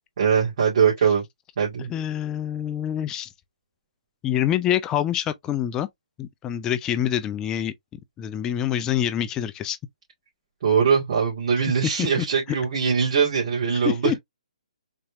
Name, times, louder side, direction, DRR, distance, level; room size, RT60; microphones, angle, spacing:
voice 1, 0.2-1.2 1.6-1.9 10.6-14.1, right 6 dB, 55° right, 2.2 m, -21 dB
voice 2, 1.9-3.3 4.2-5.9 6.2-9.8 12.0-12.6 13.8-14.2, left 10 dB, 15° left, 0.4 m, -26 dB
4.1 x 3.3 x 2.2 m
hypercardioid pair, 150°, 4 cm